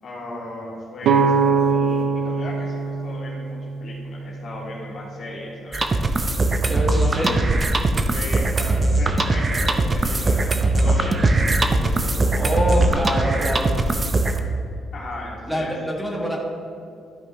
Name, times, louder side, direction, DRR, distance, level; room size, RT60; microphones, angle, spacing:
voice 1, 0.0-5.9 7.1-7.5 8.1-13.4 14.9-15.7, left 2 dB, 60° left, -4 dB, 2.1 m, -36 dB
sound 1, 1.0-4.8, right 5 dB, 80° right, 0.4 m, -22 dB
sound 2, 5.7-14.4, right 2 dB, 30° right, 0.6 m, -20 dB
voice 2, 6.6-7.4 12.3-13.7 15.5-16.4, equal, 5° right, -2 dB, 1.5 m, -25 dB
12.5 x 5.3 x 3.1 m, 2.4 s
cardioid pair, 90°, 0 cm